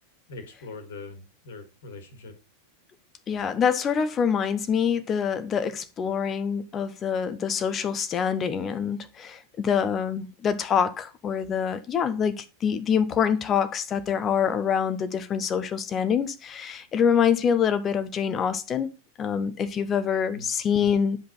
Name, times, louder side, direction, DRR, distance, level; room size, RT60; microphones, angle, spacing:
voice 1, 0.3-2.3 7.0-7.1 20.3-20.5, left 3 dB, 60° left, 1.9 m, -42 dB
voice 2, 3.3-18.9 19.2-21.2, left 7 dB, 25° left, 0.8 m, -25 dB
10.0 x 5.2 x 4.0 m
figure-of-eight pair, 90°, 0 cm